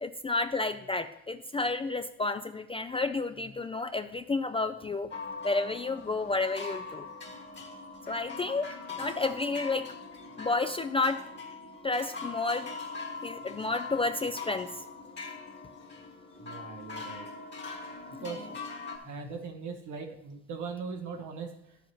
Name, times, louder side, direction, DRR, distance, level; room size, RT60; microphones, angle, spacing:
voice 1, 0.0-5.1 5.4-7.0 8.1-9.9 10.4-11.2 11.8-12.7 13.2-14.8 18.1-18.2, left 3 dB, 20° left, 9 dB, 0.3 m, -31 dB
sound 1, 5.1-19.0, left 4 dB, 35° left, 1.6 m, -42 dB
voice 2, 16.4-17.3 18.2-18.5 19.0-21.8, right 5 dB, 75° right, 3 dB, 0.9 m, -40 dB
10.5 x 7.1 x 3.0 m, 0.80 s
cardioid pair, 90°, 30 cm